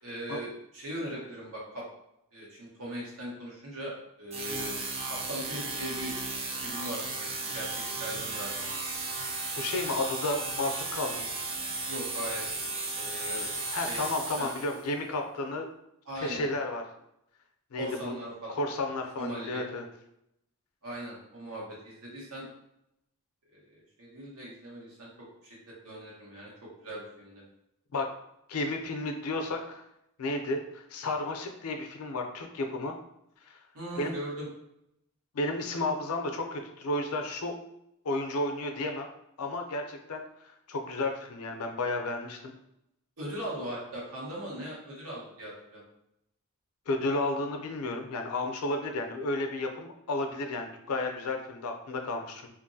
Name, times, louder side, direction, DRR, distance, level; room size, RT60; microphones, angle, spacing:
voice 1, 0.0-1.8 2.3-3.9 4.2-4.7 5.1-6.1 6.6-8.7 11.8-12.5 12.9-13.4 13.7-14.0 14.4-14.5 16.1-16.5 17.8-18.5 19.2-19.6 20.8-22.5 23.5-25.1 25.4-26.5 26.8-27.4 33.7-34.5 43.2-45.8, equal, 90° right, -4 dB, 1.1 m, -39 dB
sound 1, 4.3-14.9, right 3 dB, 30° right, 0.4 m, -35 dB
voice 2, 9.6-11.3 13.7-15.7 16.2-16.8 17.7-18.2 18.5-19.8 27.9-28.1 28.5-29.8 30.2-32.9 33.4-33.6 34.0-34.1 35.3-37.5 38.0-39.1 39.4-40.2 40.7-42.5 46.9-52.5, left 2 dB, 85° left, 4 dB, 0.5 m, -32 dB
2.9 x 2.5 x 2.6 m, 0.81 s
head